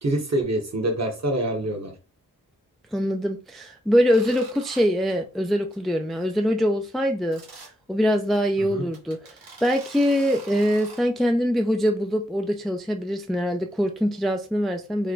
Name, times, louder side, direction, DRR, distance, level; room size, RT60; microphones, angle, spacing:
voice 1, 0.0-1.9 8.7-8.8, right 1 dB, 45° right, 2 dB, 1.2 m, -25 dB
voice 2, 2.9-15.1, equal, ahead, 4 dB, 0.3 m, -23 dB
sound 1, 4.1-4.8 5.1-5.3 5.7-5.8 6.1-6.2 7.3-7.7 8.3-8.4 8.9-11.0, right 3 dB, 70° right, 1.4 m, -44 dB
3.3 x 2.2 x 3.7 m, 0.34 s
cardioid pair, 70°, 37 cm